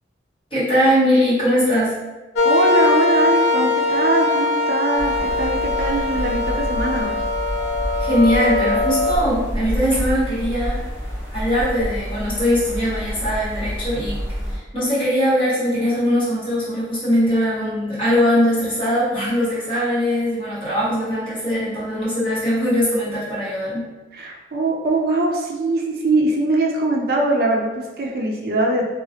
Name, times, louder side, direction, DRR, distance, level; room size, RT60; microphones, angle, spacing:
voice 1, 0.5-2.0 8.0-10.8 11.3-14.2 14.5-23.9, equal, 30° left, -10 dB, 1.4 m, -20 dB
sound 1, 2.4-9.1, left 3 dB, 65° left, 0.3 m, -21 dB
voice 2, 2.4-7.1 24.1-28.8, right 2 dB, 55° right, 0 dB, 0.4 m, -22 dB
sound 2, 5.0-14.6, equal, 10° right, 0.8 m, -28 dB
2.9 x 2.3 x 2.7 m, 1.1 s
head